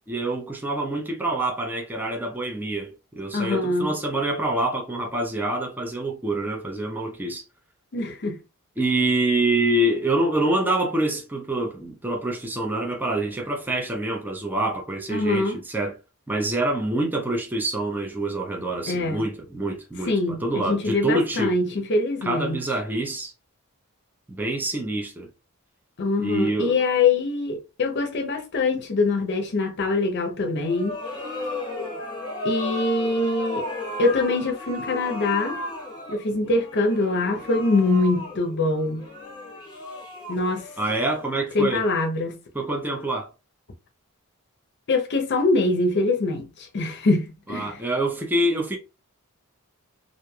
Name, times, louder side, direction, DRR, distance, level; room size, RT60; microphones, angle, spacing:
voice 1, 0.1-7.4 8.8-16.0 16.3-21.5 22.2-23.3 24.3-25.3 26.2-26.8 40.8-41.9 42.5-43.3 47.5-48.8, right 1 dB, 10° right, 0.5 m, -26 dB
voice 2, 3.3-3.9 7.9-8.4 15.1-15.6 18.9-19.2 20.0-22.6 26.0-31.0 32.4-33.6 34.0-35.6 36.1-39.1 40.3-40.7 41.5-42.4 44.9-46.5 46.7-47.7, left 3 dB, 50° left, 0.6 m, -23 dB
sound 1, 30.6-41.6, left 2 dB, 20° left, 1.0 m, -35 dB
3.1 x 2.5 x 2.2 m
head